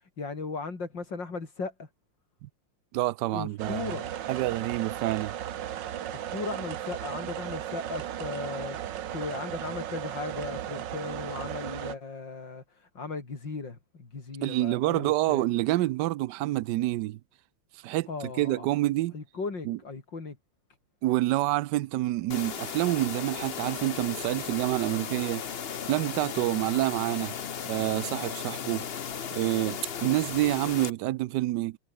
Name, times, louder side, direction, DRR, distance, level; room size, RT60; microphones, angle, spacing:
voice 1, 0.0-1.9 3.3-4.1 6.1-15.5 18.1-18.7 19.1-20.4 30.0-30.1, left 4 dB, 55° left, 4.6 m, -37 dB
voice 2, 2.9-4.0 4.3-5.3 14.4-17.2 17.8-18.1 18.4-19.1 19.6-19.8 21.0-25.4 25.9-27.3 27.7-28.8 29.3-31.8, right 16 dB, 80° right, 1.0 m, -27 dB
sound 1, 3.6-12.0, right 11 dB, 60° right, 1.6 m, -36 dB
sound 2, 22.3-30.9, left 7 dB, 70° left, 0.5 m, -36 dB
omnidirectional pair, 2.4 m